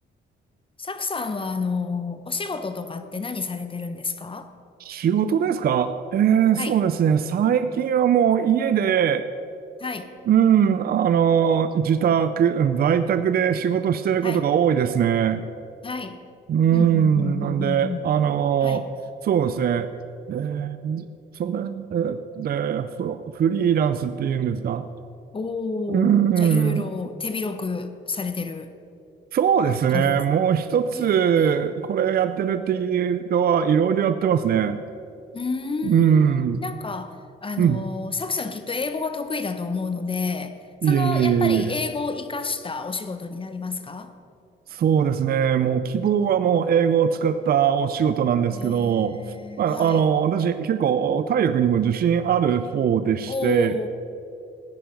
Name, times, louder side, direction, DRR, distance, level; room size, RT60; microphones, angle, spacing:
voice 1, 0.8-4.5 6.6-6.8 9.8-10.1 14.2-14.5 15.8-16.2 16.7-18.0 18.6-18.8 25.3-28.7 29.9-30.2 30.9-31.1 31.4-31.6 35.3-44.1 48.5-50.1 53.3-53.9, left 4 dB, 25° left, 1.0 m, -30 dB
voice 2, 4.8-9.3 10.3-15.4 16.5-18.9 19.2-19.9 20.3-21.1 21.3-24.9 25.9-26.9 29.3-34.8 35.8-36.6 37.6-37.8 40.8-41.7 44.7-49.2 49.6-53.7, right 8 dB, 50° right, 0.5 m, -21 dB
15.5 x 9.7 x 5.2 m
cardioid pair, 90°, 20 cm